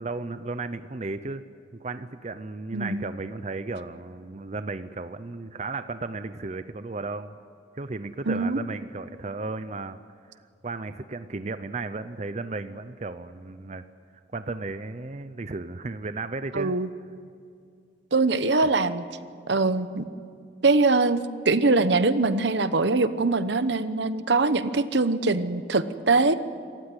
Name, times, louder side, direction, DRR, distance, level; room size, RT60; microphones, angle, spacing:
voice 1, 0.0-1.4 1.7-7.3 7.7-10.0 10.6-13.8 14.3-16.7 18.6-18.7, right 3 dB, 40° right, 11 dB, 0.6 m, -34 dB
voice 2, 2.7-3.0 8.3-8.6 16.5-16.9 18.1-19.0 19.5-20.0 20.6-26.3, right 3 dB, 75° right, 13 dB, 1.0 m, -23 dB
27.0 x 15.0 x 9.8 m, 2.3 s
head